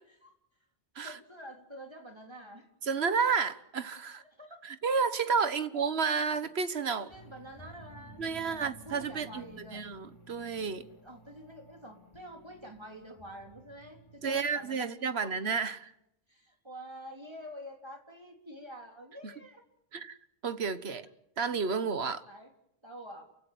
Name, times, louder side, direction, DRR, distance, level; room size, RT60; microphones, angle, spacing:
voice 1, 1.0-2.7 4.1-4.6 5.5-5.7 6.9-9.8 11.0-14.9 16.3-19.6 22.2-22.5 22.8-23.3, equal, 25° right, 3.9 m, -48 dB
voice 2, 2.8-4.2 4.6-7.1 8.2-9.4 9.7-10.8 14.2-15.9 19.2-19.3 19.9-20.2 20.4-21.0 21.4-22.2, right 5 dB, 75° right, 1.6 m, -31 dB
sound 1, 7.1-14.8, right 2 dB, 25° left, 3.8 m, -54 dB
29.0 x 16.5 x 9.4 m
omnidirectional pair, 1.1 m